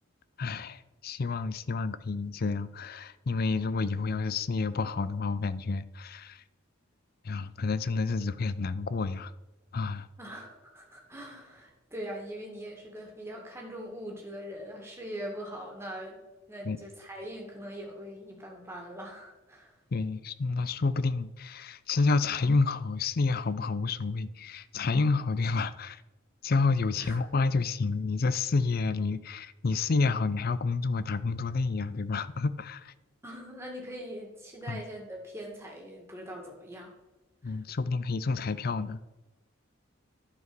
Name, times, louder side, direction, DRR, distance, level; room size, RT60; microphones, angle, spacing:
voice 1, 0.4-6.4 7.2-9.3 9.7-10.1 16.6-16.8 19.9-26.0 26.4-32.9 34.7-34.8 37.4-39.1, left 4 dB, 50° left, 14 dB, 0.5 m, -29 dB
voice 2, 10.2-16.2 16.5-19.7 27.0-27.2 33.2-36.9 37.4-37.6, equal, 15° right, 0 dB, 2.1 m, -42 dB
11.5 x 4.8 x 6.0 m, 1.1 s
head